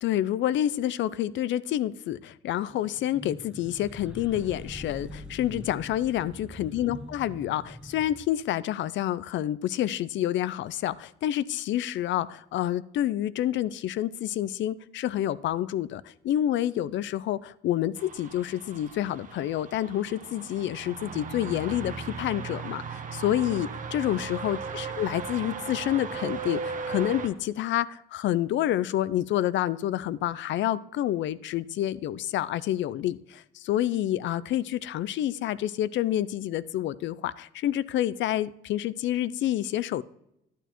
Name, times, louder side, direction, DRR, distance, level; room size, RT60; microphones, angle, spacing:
voice 1, 0.0-40.0, left 12 dB, 70° left, 19 dB, 0.4 m, -28 dB
sound 1, 2.7-8.2, equal, 5° right, 0.9 m, -43 dB
sound 2, 18.0-27.3, right 5 dB, 40° right, 1.0 m, -37 dB
11.5 x 8.9 x 3.0 m, 0.81 s
cardioid pair, 90°, 20 cm